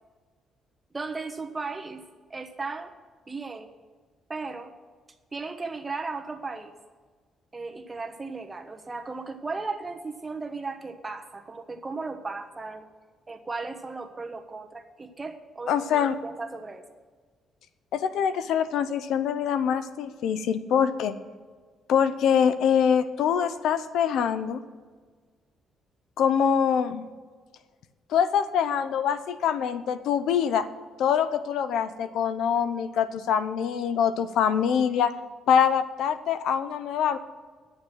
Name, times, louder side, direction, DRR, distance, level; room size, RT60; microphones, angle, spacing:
voice 1, 0.9-2.0 2.3-2.9 3.3-3.7 4.3-4.7 5.3-6.7 7.5-12.9 13.3-15.9 16.2-16.8, right 3 dB, 25° right, 5 dB, 1.2 m, -36 dB
voice 2, 15.7-16.1 17.9-21.2 21.9-24.6 26.2-27.0 28.1-30.7 31.0-35.1 35.5-37.2, left 8 dB, 80° left, 13 dB, 0.6 m, -24 dB
10.5 x 7.2 x 7.6 m, 1.5 s
cardioid pair, 90°, 0 cm